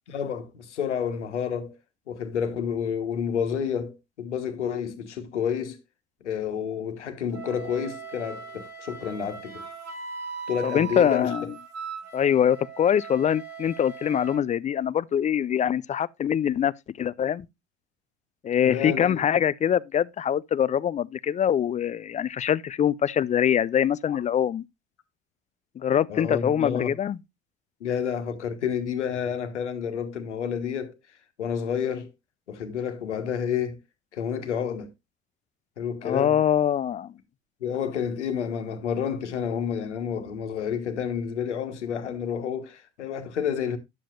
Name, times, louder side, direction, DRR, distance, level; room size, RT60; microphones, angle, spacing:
voice 1, 0.1-1.8 2.1-5.8 6.2-9.7 10.5-11.3 18.6-19.2 24.1-24.2 26.1-26.9 27.8-30.9 31.4-32.1 32.5-33.8 34.1-34.9 35.8-36.4 37.6-43.8, left 7 dB, 80° left, 1.4 m, -30 dB
Wind instrument woodwind instrument, 7.3-14.4, right 5 dB, 45° right, 1.9 m, -39 dB
voice 2, 10.6-11.5 12.1-16.7 17.0-17.5 18.4-24.6 25.8-27.2 36.0-37.1, left 9 dB, 20° left, 0.4 m, -24 dB
10.5 x 7.4 x 2.5 m
figure-of-eight pair, 65°, 35 cm